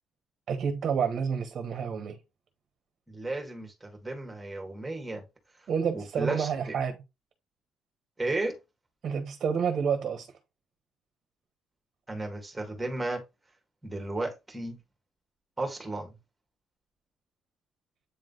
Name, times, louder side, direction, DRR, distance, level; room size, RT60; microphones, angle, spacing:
voice 1, 0.5-2.2 5.7-7.0 9.0-10.3, right 6 dB, 40° right, 1.1 m, -29 dB
voice 2, 3.1-5.2 5.9-6.8 8.2-8.6 12.1-13.2 13.8-14.8 15.6-16.2, right 2 dB, 10° right, 1.7 m, -34 dB
8.5 x 3.3 x 3.9 m
cardioid pair, 175°, 0 cm